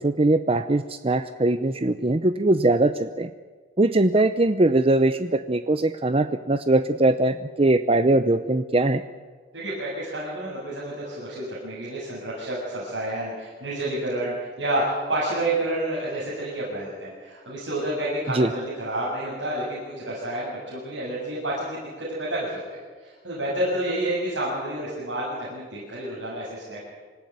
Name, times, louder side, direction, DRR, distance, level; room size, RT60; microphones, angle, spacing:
voice 1, 0.0-3.3 3.8-9.0 18.3-18.5, right 2 dB, 30° right, 10 dB, 0.7 m, -21 dB
voice 2, 9.5-26.8, right 1 dB, 85° right, -7 dB, 7.5 m, -29 dB
26.0 x 16.0 x 9.4 m, 1.5 s
head